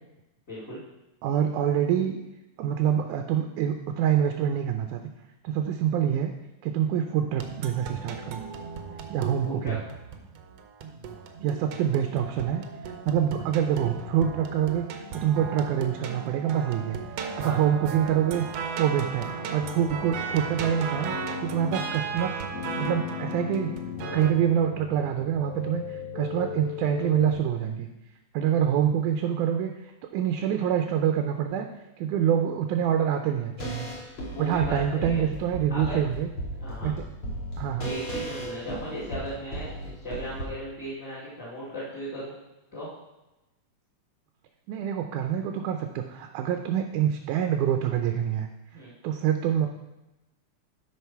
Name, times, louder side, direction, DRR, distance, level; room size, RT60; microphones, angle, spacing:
voice 1, 0.5-0.8 9.4-9.7 17.4-17.6 34.3-35.2 35.7-36.0 36.6-36.9 37.8-42.3 42.7-42.9 48.7-48.9, equal, 20° left, -10 dB, 2.6 m, -36 dB
voice 2, 1.2-2.2 2.6-5.1 5.4-6.3 6.6-8.4 9.1-9.8 11.4-12.6 13.1-21.1 21.4-22.4 22.8-23.7 24.1-27.9 28.3-29.7 30.1-31.7 32.0-33.9 34.4-36.3 36.8-37.1 37.6-37.9 44.7-48.5 49.0-49.7, right 9 dB, 90° right, 5 dB, 2.1 m, -26 dB
sound 1, 7.4-24.3, right 6 dB, 70° right, 1.6 m, -36 dB
sound 2, 19.6-27.3, left 6 dB, 70° left, 1.4 m, -37 dB
sound 3, 33.6-40.5, right 1 dB, 45° left, 2.7 m, -35 dB
11.5 x 5.4 x 4.6 m, 0.99 s
omnidirectional pair, 3.4 m